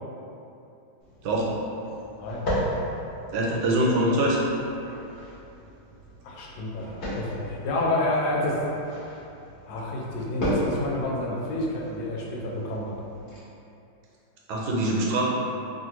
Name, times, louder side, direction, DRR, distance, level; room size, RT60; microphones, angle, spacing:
sound 1, 1.0-13.4, equal, 50° left, 0.5 m, -35 dB
voice 1, 3.3-4.4 14.5-15.2, right 1 dB, 80° right, -3 dB, 1.4 m, -23 dB
voice 2, 6.2-8.6 9.7-13.0, left 1 dB, 80° left, -3 dB, 1.4 m, -29 dB
3.1 x 2.5 x 2.9 m, 2.8 s
omnidirectional pair, 2.2 m